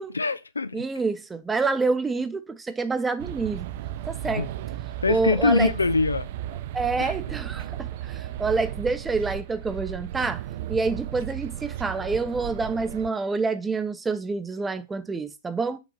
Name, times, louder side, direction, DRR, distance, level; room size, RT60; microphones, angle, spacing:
voice 1, 0.0-0.8 4.2-4.5 5.0-6.3 7.0-7.1, left 3 dB, 85° left, 0.3 m, -24 dB
voice 2, 0.7-3.7 4.1-4.5 5.1-5.7 6.7-7.6 8.0-10.4 10.7-15.8, right 4 dB, 15° right, 0.6 m, -27 dB
sound 1, 3.2-13.1, right 12 dB, 55° right, 0.3 m, -35 dB
6.2 x 2.7 x 3.0 m
figure-of-eight pair, 100°, 0 cm